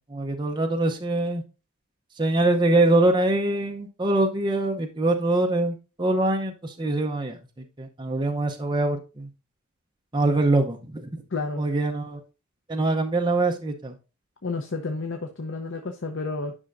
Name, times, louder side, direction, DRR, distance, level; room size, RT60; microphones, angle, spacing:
voice 1, 0.1-1.4 2.2-7.4 7.8-9.3 10.1-11.2 11.6-12.2 12.7-13.9, right 2 dB, 20° right, 2 dB, 0.6 m, -24 dB
voice 2, 11.3-11.6 14.4-16.6, left 3 dB, 55° left, 4 dB, 0.7 m, -31 dB
9.7 x 5.6 x 2.5 m, 0.30 s
head